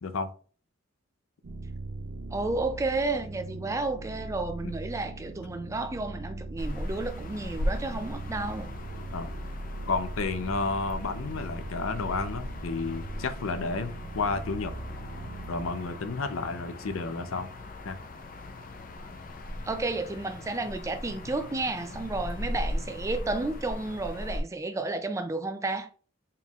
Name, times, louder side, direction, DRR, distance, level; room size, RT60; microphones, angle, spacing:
sound 1, 1.4-15.7, right 2 dB, 65° right, 0.6 m, -40 dB
voice 1, 2.3-8.7 19.6-25.9, right 2 dB, 15° right, 0.3 m, -32 dB
sound 2, 6.6-24.4, left 1 dB, 40° left, 0.5 m, -38 dB
voice 2, 9.9-14.7 15.5-17.5 17.8-18.0, left 4 dB, 90° left, 0.6 m, -31 dB
4.4 x 3.6 x 2.4 m
head